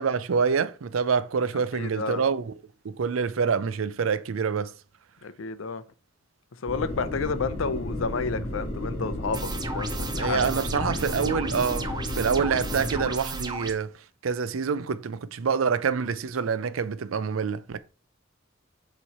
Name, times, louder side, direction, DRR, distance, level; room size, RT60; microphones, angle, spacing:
voice 1, 0.0-2.5 2.8-4.7 10.2-17.8, right 6 dB, 85° right, 0.5 m, -26 dB
voice 2, 1.7-2.2 5.2-5.8 6.6-10.5, left 4 dB, 75° left, 0.6 m, -31 dB
sound 1, 6.7-13.1, left 1 dB, 40° left, 2.3 m, -33 dB
sound 2, 9.3-13.7, right 3 dB, 20° right, 0.6 m, -34 dB
7.2 x 3.1 x 4.2 m
head